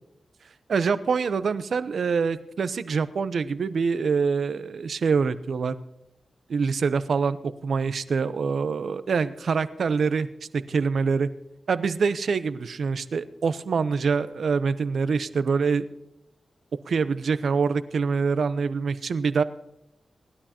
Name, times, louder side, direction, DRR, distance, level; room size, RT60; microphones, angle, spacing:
voice 1, 0.7-5.8 6.5-10.3 10.5-11.3 11.7-15.8 16.9-19.4, right 5 dB, 75° right, 14 dB, 0.8 m, -25 dB
19.5 x 12.5 x 2.9 m, 0.84 s
cardioid pair, 65°, 0 cm